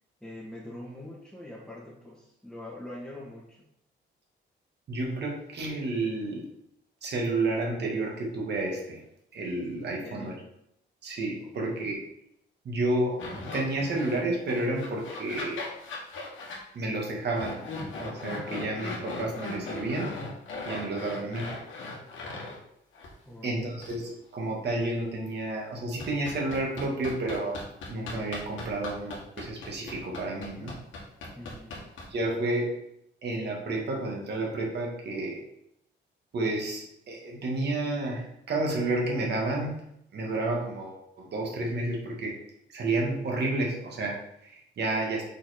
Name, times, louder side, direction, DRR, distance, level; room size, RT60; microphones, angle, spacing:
voice 1, 0.2-3.6 10.0-10.5 11.4-11.6 23.2-23.7 31.4-31.8, left 1 dB, 5° left, -6 dB, 1.8 m, -43 dB
voice 2, 4.9-6.5 7.0-9.0 9.3-10.3 11.0-12.0 12.6-15.7 16.7-17.6 18.0-20.2 20.7-21.5 23.4-27.6 27.9-30.7 32.1-32.8 33.2-35.4 36.3-42.4 42.7-45.3, right 2 dB, 60° right, -1 dB, 2.2 m, -31 dB
sound 1, 13.2-14.2 14.5-16.6 17.3-22.6 22.9-23.1 23.8-23.9 26.0-32.3, left 3 dB, 75° left, 1.9 m, -38 dB
6.2 x 4.4 x 4.5 m, 0.77 s
cardioid pair, 90°, 20 cm